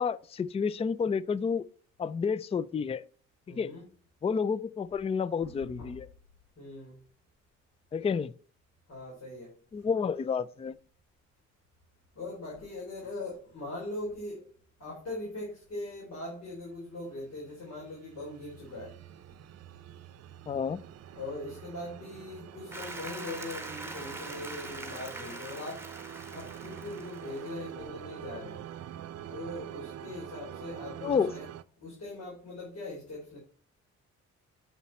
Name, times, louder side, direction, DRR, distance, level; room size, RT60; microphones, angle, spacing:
voice 1, 0.0-1.7 2.0-3.0 3.5-3.7 4.2-6.1 7.9-8.3 9.7-10.7 20.5-20.8 31.0-31.3, left 6 dB, 20° left, 0.4 m, -30 dB
voice 2, 3.5-3.9 5.4-6.1 6.6-7.0 8.9-9.5 12.1-14.5 14.8-19.0 19.2-19.3 21.1-26.0 26.3-28.6 29.3-31.5 31.8-33.4, left 2 dB, 60° left, 4.4 m, -41 dB
sound 1, 17.3-31.6, right 10 dB, 55° right, 0.6 m, -46 dB
Applause, 22.7-27.7, right 2 dB, 10° right, 1.7 m, -43 dB
8.3 x 5.5 x 4.3 m
cardioid pair, 90°, 30 cm